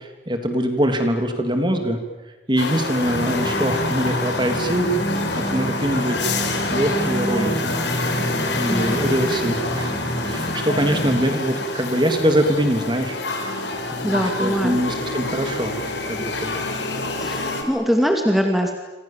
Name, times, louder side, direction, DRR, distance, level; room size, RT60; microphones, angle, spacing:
voice 1, 0.0-2.0 2.5-6.2 6.7-7.8 8.2-9.9 10.2-13.2 14.0-15.8 16.1-16.6, right 1 dB, 25° right, 6 dB, 3.2 m, -23 dB
sound 1, 2.6-17.6, left 3 dB, 75° left, 4.8 m, -27 dB
sound 2, 3.0-11.2, equal, 30° left, 4.6 m, -28 dB
voice 2, 14.0-14.8 17.2-18.7, equal, ahead, 2 dB, 2.5 m, -22 dB
28.0 x 27.5 x 7.5 m, 1.1 s
head